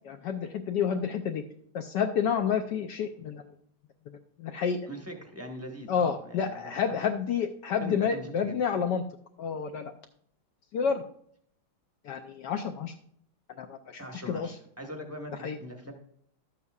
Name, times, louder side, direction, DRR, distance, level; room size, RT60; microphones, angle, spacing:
voice 1, 0.0-1.4 1.7-3.5 4.4-4.8 5.9-9.0 9.4-9.9 10.7-11.0 12.0-12.9 13.6-14.5 15.4-15.6, left 7 dB, 75° left, 5 dB, 1.0 m, -29 dB
voice 2, 4.9-7.0 7.8-8.6 14.0-15.9, equal, 10° right, 2 dB, 0.6 m, -42 dB
12.0 x 8.3 x 2.4 m, 0.66 s
omnidirectional pair, 2.3 m